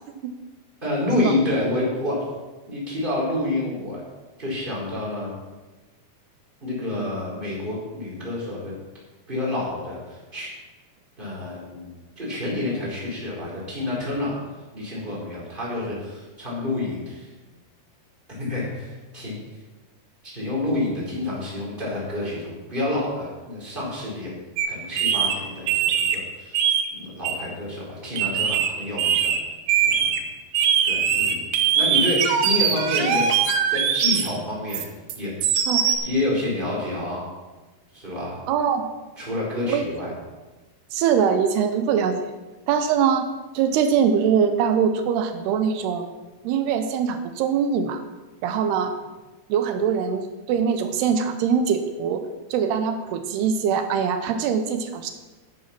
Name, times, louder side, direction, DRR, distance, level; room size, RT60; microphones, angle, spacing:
voice 1, 0.8-2.2 2.7-4.0 4.4-5.3 6.6-8.7 9.3-10.5 11.2-14.3 14.7-17.3 18.4-19.4 20.2-24.3 24.7-26.6 27.0-29.4 29.8-30.2 30.8-31.4 31.7-33.2 33.7-34.8 35.2-35.3 36.0-37.2 37.9-38.4 39.2-40.1, left 2 dB, 10° right, -6 dB, 4.5 m, -28 dB
sound 1, 24.6-24.7 25.0-25.3 25.7-26.2 26.5-26.9 27.2-27.4 28.2-28.7 29.0-29.4 29.7-30.2 30.5-34.3 34.7-36.0, right 8 dB, 70° right, 2.5 m, -21 dB
voice 2, 38.5-38.9 39.7-39.9 40.9-42.2 42.7-43.3 43.5-46.1 46.4-48.0 48.4-48.9 49.5-52.2 52.5-55.1, right 7 dB, 85° right, 7 dB, 2.9 m, -22 dB
11.0 x 9.7 x 5.9 m, 1.2 s
omnidirectional pair, 4.6 m